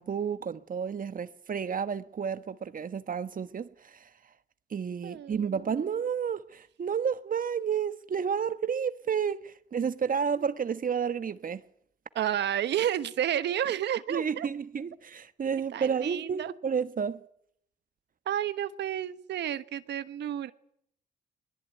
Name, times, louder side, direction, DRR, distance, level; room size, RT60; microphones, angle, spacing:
voice 1, 0.0-4.1 4.7-11.6 14.1-17.2, right 7 dB, 50° right, 1.3 m, -31 dB
voice 2, 5.0-5.5 12.1-14.5 15.7-16.5 18.3-20.5, right 10 dB, 75° right, 1.3 m, -31 dB
21.5 x 21.0 x 9.2 m
cardioid pair, 65°, 18 cm